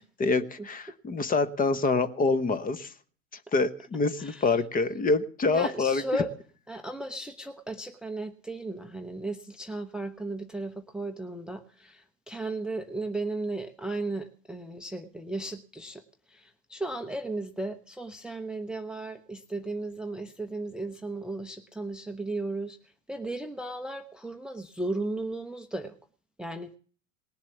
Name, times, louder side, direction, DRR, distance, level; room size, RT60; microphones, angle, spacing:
voice 1, 0.2-2.9 3.5-6.0, left 3 dB, 20° left, 13 dB, 1.1 m, -26 dB
voice 2, 4.2-4.6 5.5-6.3 6.7-16.0 16.3-26.0 26.4-26.7, right 2 dB, ahead, 8 dB, 0.7 m, -35 dB
19.0 x 7.4 x 7.9 m, 0.43 s
figure-of-eight pair, 85°, 39 cm